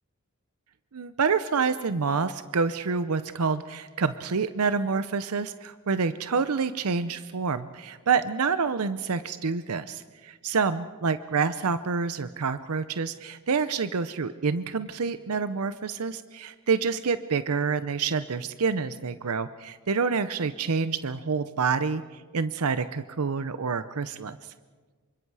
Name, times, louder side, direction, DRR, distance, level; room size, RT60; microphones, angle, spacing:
voice 1, 0.9-22.0 22.3-24.4, right 5 dB, 85° right, 12 dB, 0.7 m, -27 dB
27.5 x 25.0 x 4.8 m, 1.4 s
head